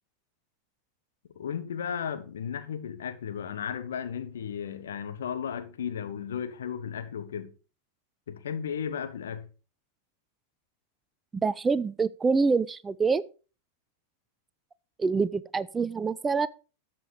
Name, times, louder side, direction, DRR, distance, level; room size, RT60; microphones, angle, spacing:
voice 1, 1.3-7.5 8.3-9.5, left 8 dB, 65° left, 1.3 m, -34 dB
voice 2, 11.4-13.2 15.0-16.5, right 4 dB, 15° right, 0.5 m, -26 dB
12.5 x 7.7 x 4.9 m
figure-of-eight pair, 90°, 0 cm